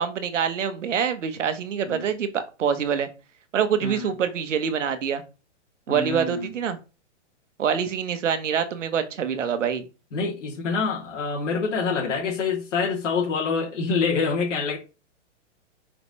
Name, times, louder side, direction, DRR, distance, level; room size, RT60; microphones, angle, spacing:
voice 1, 0.0-3.1 3.5-5.2 5.9-6.8 7.6-9.8, right 7 dB, 85° right, 1.4 m, -25 dB
voice 2, 5.9-6.5 10.1-14.8, left 4 dB, 80° left, 3.0 m, -26 dB
5.8 x 5.4 x 3.2 m
hypercardioid pair, 160°, 36 cm